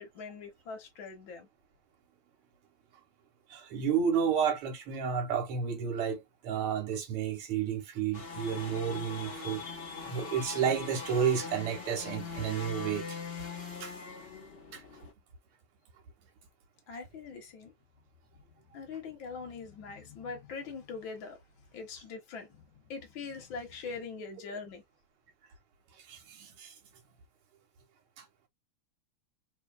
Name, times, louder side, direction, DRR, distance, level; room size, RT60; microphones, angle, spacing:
voice 1, 0.0-1.5 16.9-17.7 18.4-18.5 18.7-21.4 21.7-24.8, left 4 dB, 65° left, 1.8 m, -42 dB
voice 2, 3.5-9.6 10.1-13.2 13.8-14.0 14.7-14.8 26.1-26.7 28.2-28.3, right 7 dB, 85° right, 2.0 m, -31 dB
sound 1, 8.1-15.1, left 4 dB, 30° left, 1.3 m, -41 dB
4.2 x 2.9 x 2.3 m
omnidirectional pair, 2.4 m